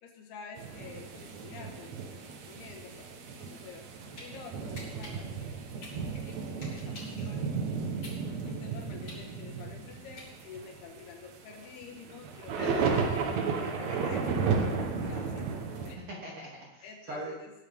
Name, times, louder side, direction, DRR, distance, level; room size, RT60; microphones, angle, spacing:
voice 1, 0.0-3.9 4.2-6.4 6.7-7.5 8.5-14.3 15.0-15.5 15.9-16.0 16.8-17.5, left 5 dB, 75° left, 2 dB, 3.7 m, -48 dB
sound 1, 0.6-15.9, right 5 dB, 60° right, 1.9 m, -34 dB
sound 2, 4.2-4.3 4.7-7.2 7.6-10.7, left 2 dB, 40° left, 4.8 m, -48 dB
voice 2, 8.0-8.5 12.6-12.8 16.0-17.4, right 1 dB, 35° right, -4 dB, 3.3 m, -41 dB
20.5 x 10.5 x 3.7 m, 0.96 s
omnidirectional pair, 4.6 m